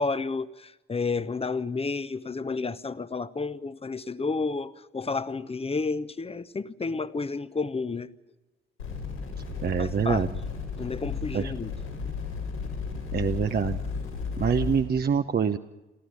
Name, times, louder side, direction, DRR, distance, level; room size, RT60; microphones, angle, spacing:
voice 1, 0.0-8.1 9.8-10.2 10.8-11.7, left 4 dB, 20° left, 0.9 m, -31 dB
sound 1, 8.8-14.8, left 5 dB, 90° left, 5.5 m, -34 dB
voice 2, 9.6-10.3 11.3-11.5 13.1-13.8 14.4-15.6, right 7 dB, 30° right, 0.8 m, -25 dB
24.5 x 14.0 x 9.3 m
figure-of-eight pair, 50°, 32 cm